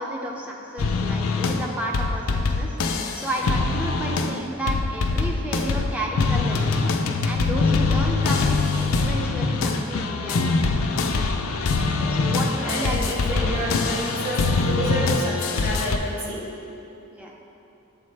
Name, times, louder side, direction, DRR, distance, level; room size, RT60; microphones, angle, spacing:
voice 1, 0.0-6.9 7.2-11.1 12.1-13.3 17.1-17.3, right 1 dB, 5° right, -1 dB, 0.4 m, -32 dB
sound 1, 0.8-1.7 1.9-4.4 4.7-16.0, left 3 dB, 70° left, 0.4 m, -23 dB
voice 2, 12.0-12.4 12.6-16.5, right 1 dB, 55° right, -6 dB, 1.4 m, -30 dB
8.4 x 3.8 x 3.2 m, 2.8 s
head